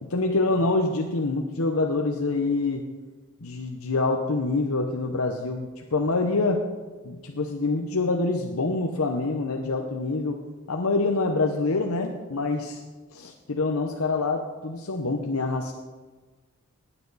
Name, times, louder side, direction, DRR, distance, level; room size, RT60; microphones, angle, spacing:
voice 1, 0.0-2.8 3.4-6.7 7.0-10.4 10.7-12.8 13.1-15.7, left 3 dB, 80° left, 3 dB, 0.9 m, -26 dB
17.5 x 9.1 x 4.1 m, 1.4 s
head